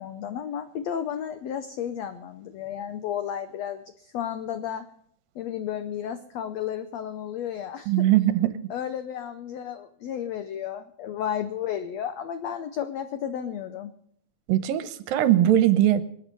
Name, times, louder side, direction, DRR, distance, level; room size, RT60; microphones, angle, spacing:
voice 1, 0.0-4.8 5.3-7.9 8.7-13.9, left 9 dB, 85° left, 9 dB, 1.5 m, -33 dB
voice 2, 7.9-8.5 14.5-16.0, right 12 dB, 80° right, 12 dB, 2.6 m, -20 dB
26.5 x 8.8 x 5.4 m, 0.66 s
omnidirectional pair, 4.1 m